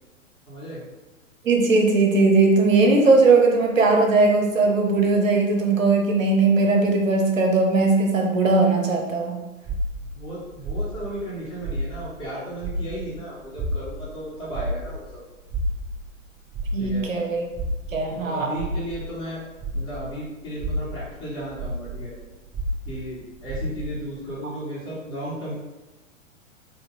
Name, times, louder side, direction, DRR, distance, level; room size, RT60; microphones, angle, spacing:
voice 1, 0.5-0.8 10.1-15.2 16.8-17.1 18.2-19.4 19.7-22.1 22.8-25.5, right 1 dB, 10° left, -9 dB, 1.4 m, -34 dB
voice 2, 1.4-9.4 16.7-17.4 17.9-18.6, right 3 dB, 75° right, 1 dB, 0.7 m, -19 dB
sound 1, 9.6-12.3 12.6-20.1 20.5-24.0, right 1 dB, 15° right, 1.1 m, -31 dB
2.8 x 2.5 x 3.7 m, 1.1 s
figure-of-eight pair, 105°, 39 cm